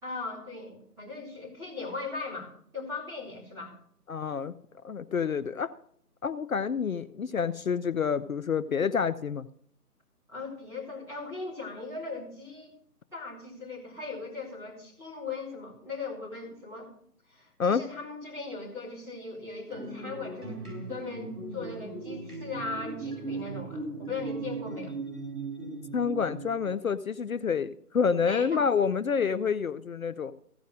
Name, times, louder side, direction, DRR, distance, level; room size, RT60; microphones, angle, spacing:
voice 1, 0.0-3.8 10.3-12.7 13.1-16.9 17.3-20.6 20.9-24.9 28.2-28.7, left 3 dB, 5° right, -7 dB, 3.1 m, -39 dB
voice 2, 4.1-4.5 4.8-5.7 6.2-9.4 17.6-17.8 25.9-30.3, left 6 dB, 65° left, 13 dB, 0.6 m, -28 dB
sound 1, 19.7-26.8, right 3 dB, 75° right, 4.9 m, -38 dB
15.5 x 5.2 x 6.3 m, 0.65 s
figure-of-eight pair, 150°, 46 cm